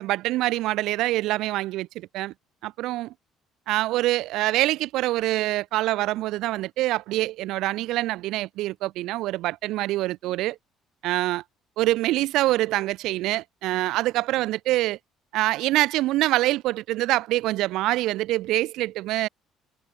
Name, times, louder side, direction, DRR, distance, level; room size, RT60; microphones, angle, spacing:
voice 1, 0.0-2.3 2.6-3.1 3.7-10.6 11.0-11.4 11.8-15.0 15.3-19.3, right 17 dB, 75° right, 3.8 m, -25 dB
supercardioid pair, 80°, 0 cm